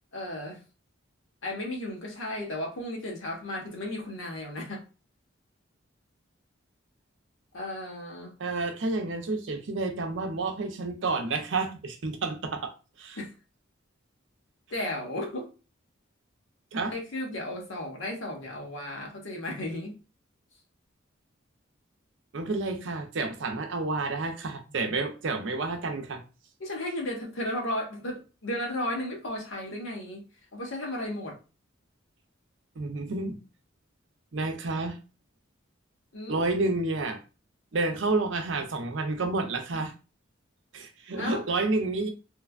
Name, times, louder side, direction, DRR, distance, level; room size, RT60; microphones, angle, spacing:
voice 1, 0.1-0.6 1.4-4.8 7.5-8.3 13.2-13.3 14.7-15.5 16.9-19.9 26.6-30.2 30.5-31.4 36.1-36.4 41.2-41.4, left 1 dB, 75° left, 1.0 m, -34 dB
voice 2, 8.4-12.7 13.0-13.2 16.7-17.0 22.3-26.2 32.8-33.4 34.3-35.0 36.3-37.2 37.7-39.9 40.7-42.1, right 3 dB, 65° right, 0.6 m, -30 dB
3.2 x 2.2 x 2.3 m
head